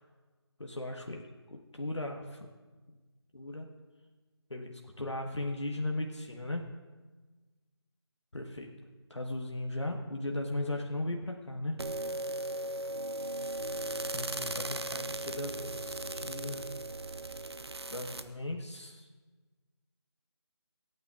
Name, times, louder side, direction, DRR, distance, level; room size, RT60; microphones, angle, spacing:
voice 1, 0.6-1.2 1.5-2.5 3.3-3.7 4.5-6.6 8.3-8.7 9.1-11.8 14.1-16.6 17.9-19.1, left 1 dB, 80° left, 2 dB, 1.3 m, -37 dB
sound 1, 11.8-18.2, right 1 dB, 65° right, 0.7 m, -37 dB
26.5 x 9.3 x 2.4 m, 1.3 s
figure-of-eight pair, 160°, 15 cm